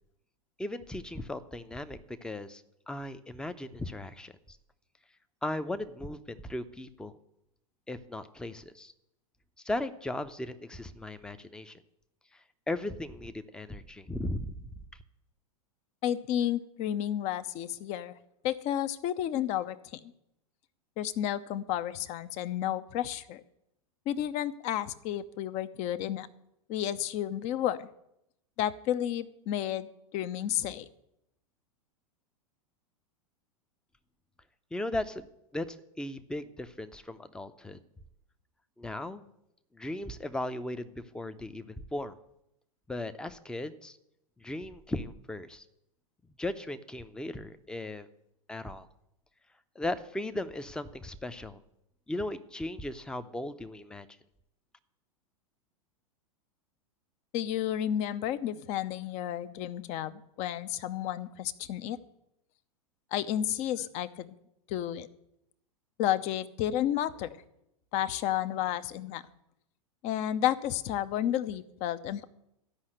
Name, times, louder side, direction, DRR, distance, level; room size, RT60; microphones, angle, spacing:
voice 1, 0.6-4.6 5.4-7.1 7.9-8.9 9.6-11.8 12.7-14.7 34.7-35.3 35.5-37.8 38.8-39.2 39.7-42.2 42.9-44.0 44.4-45.6 46.4-48.1 48.5-48.9 49.8-51.6 52.1-54.1, left 1 dB, 5° left, 10 dB, 0.6 m, -37 dB
voice 2, 16.0-18.1 18.4-20.0 21.0-23.4 24.1-26.3 26.7-27.9 28.6-30.9 57.3-62.0 63.1-64.3 64.7-65.1 66.0-67.3 67.9-69.3 70.0-72.2, left 11 dB, 40° left, 14 dB, 0.7 m, -31 dB
13.0 x 5.6 x 7.7 m, 0.82 s
figure-of-eight pair, 95°, 18 cm